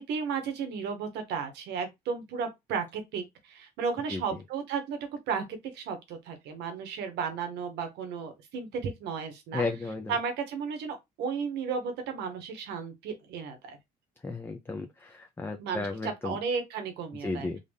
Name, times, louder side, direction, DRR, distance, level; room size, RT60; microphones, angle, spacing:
voice 1, 0.0-5.0 5.3-5.4 5.7-9.6 10.1-13.8 15.6-17.5, right 6 dB, 80° right, 1.3 m, -34 dB
voice 2, 9.5-10.1 14.2-16.4 17.2-17.6, left 3 dB, 15° left, 0.5 m, -34 dB
3.9 x 2.5 x 3.5 m
cardioid pair, 110°, 17 cm